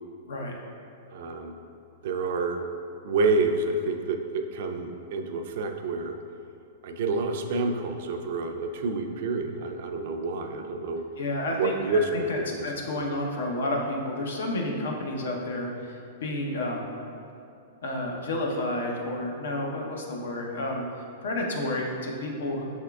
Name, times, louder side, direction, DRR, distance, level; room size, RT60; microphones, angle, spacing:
voice 1, 1.1-1.6 2.0-2.6 3.0-6.1 6.8-11.0 11.6-12.1 12.4-12.7 12.9-13.0, right 3 dB, 60° right, 5 dB, 0.4 m, -28 dB
voice 2, 11.2-16.9 17.8-20.8 21.2-22.6, left 1 dB, 85° left, 0 dB, 0.7 m, -30 dB
5.9 x 3.6 x 2.3 m, 2.6 s
hypercardioid pair, 145°, 0 cm